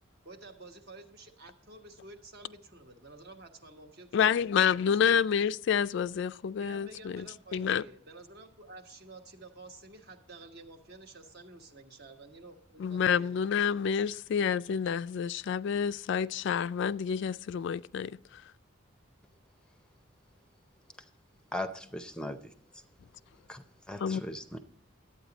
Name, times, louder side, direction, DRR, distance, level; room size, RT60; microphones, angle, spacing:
voice 1, 0.2-4.8 5.0-5.1 6.6-13.4 13.9-14.0, right 2 dB, 55° right, 1.3 m, -51 dB
voice 2, 4.1-7.3 7.5-7.8 12.8-18.4 24.0-24.2, left 7 dB, 60° left, 0.3 m, -28 dB
voice 3, 21.5-22.8 23.5-24.6, left 1 dB, 5° left, 0.6 m, -39 dB
12.0 x 8.8 x 4.0 m
head